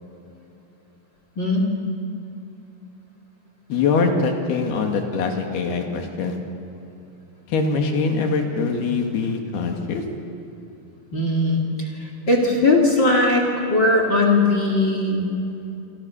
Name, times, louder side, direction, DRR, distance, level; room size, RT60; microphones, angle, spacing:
voice 1, 1.4-1.7 11.1-11.6 12.0-13.4 13.7-15.3, left 2 dB, 30° left, 1 dB, 2.8 m, -19 dB
voice 2, 3.7-6.4 7.5-10.0, left 4 dB, 75° left, 3 dB, 4.2 m, -23 dB
27.5 x 25.5 x 7.1 m, 2.7 s
omnidirectional pair, 4.6 m